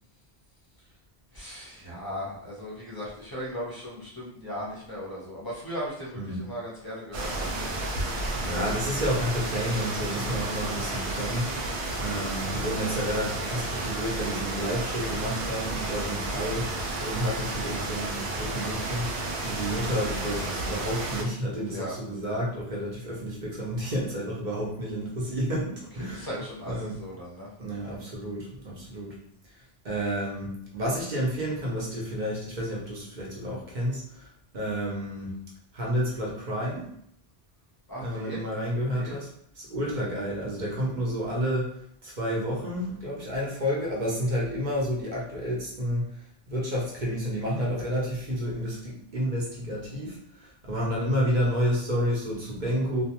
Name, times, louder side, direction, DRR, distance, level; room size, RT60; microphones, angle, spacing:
voice 1, 1.3-8.9 21.7-22.0 26.0-27.5 37.9-38.4 38.9-39.1, equal, 25° left, -6 dB, 0.6 m, -37 dB
sound 1, 7.1-21.2, right 2 dB, 75° right, 0.8 m, -32 dB
voice 2, 8.3-26.3 26.6-27.0 27.6-29.2 29.8-34.3 34.5-35.4 35.7-36.9 38.0-39.3 39.5-46.2 46.5-53.0, equal, 50° right, -4 dB, 0.8 m, -30 dB
2.4 x 2.2 x 2.8 m, 0.68 s
omnidirectional pair, 1.1 m